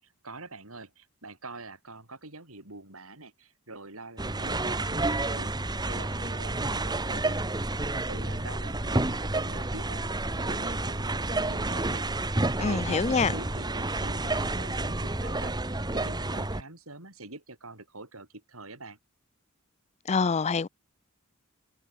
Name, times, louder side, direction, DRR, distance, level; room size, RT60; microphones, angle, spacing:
voice 1, 0.0-7.4 7.8-12.1 12.6-19.0, right 2 dB, 70° right, 7.0 m, -45 dB
sound 1, 4.2-16.6, right 2 dB, 20° right, 1.5 m, -30 dB
voice 2, 12.6-13.3 20.1-20.7, left 5 dB, 30° left, 0.4 m, -25 dB
head